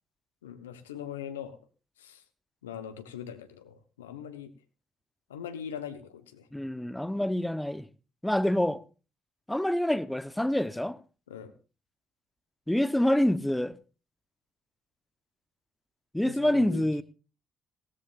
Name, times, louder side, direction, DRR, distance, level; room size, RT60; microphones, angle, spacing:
voice 1, 0.4-1.6 2.0-2.2 2.6-4.5 5.3-6.5 11.3-11.5 16.2-17.0, left 9 dB, 90° left, 1.2 m, -41 dB
voice 2, 6.5-7.9 8.2-8.8 9.5-11.0 12.7-13.8 16.1-17.0, left 1 dB, 5° left, 1.1 m, -26 dB
18.0 x 16.5 x 2.6 m
hypercardioid pair, 45°, 0 cm